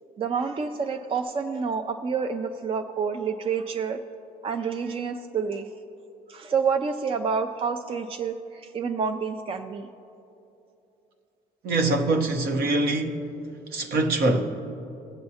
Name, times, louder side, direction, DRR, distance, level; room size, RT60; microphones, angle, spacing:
voice 1, 0.2-4.0 4.4-5.7 6.3-9.9, right 5 dB, 35° right, 0.4 m, -28 dB
voice 2, 11.6-13.2 13.7-14.4, right 2 dB, 65° right, 1.0 m, -23 dB
20.5 x 7.6 x 2.8 m
cardioid pair, 110°, 17 cm